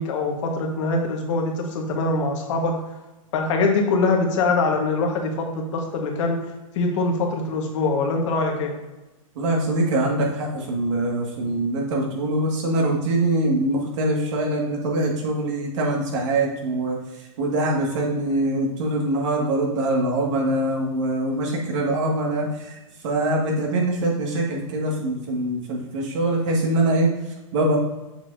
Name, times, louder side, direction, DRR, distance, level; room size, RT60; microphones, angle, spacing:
voice 1, 0.0-2.7 3.3-6.4 6.7-8.7, left 3 dB, 60° left, 2 dB, 1.4 m, -23 dB
voice 2, 9.4-22.8 23.0-27.8, right 1 dB, 60° right, -1 dB, 1.9 m, -23 dB
6.7 x 5.9 x 2.7 m, 1.1 s
hypercardioid pair, 120°, 18 cm